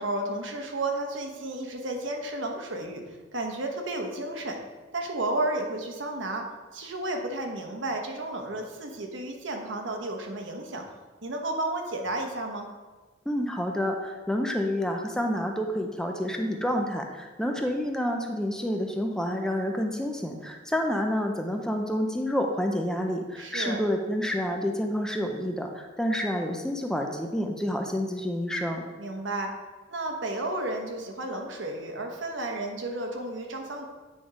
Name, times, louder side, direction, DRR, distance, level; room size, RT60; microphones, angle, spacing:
voice 1, 0.0-4.6 4.9-6.4 6.7-10.8 11.2-12.7 17.4-17.5 23.4-23.8 29.0-29.5 29.9-33.8, right 2 dB, 70° right, 3 dB, 1.1 m, -32 dB
voice 2, 13.3-28.8, equal, 5° left, 2 dB, 0.5 m, -29 dB
9.2 x 3.6 x 5.0 m, 1.3 s
head